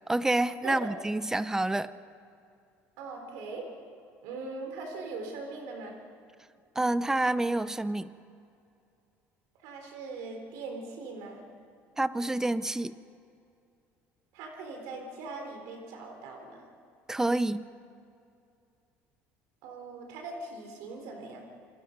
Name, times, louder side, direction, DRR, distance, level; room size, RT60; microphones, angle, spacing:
voice 1, 0.1-1.9 6.8-8.1 12.0-12.9 17.1-17.6, right 2 dB, 10° right, 15 dB, 0.7 m, -28 dB
voice 2, 3.0-3.7 4.2-5.9 9.6-11.4 14.3-16.6 19.6-21.5, right 3 dB, 85° right, 3 dB, 4.1 m, -40 dB
27.0 x 21.0 x 5.4 m, 2.5 s
cardioid pair, 115°, 6 cm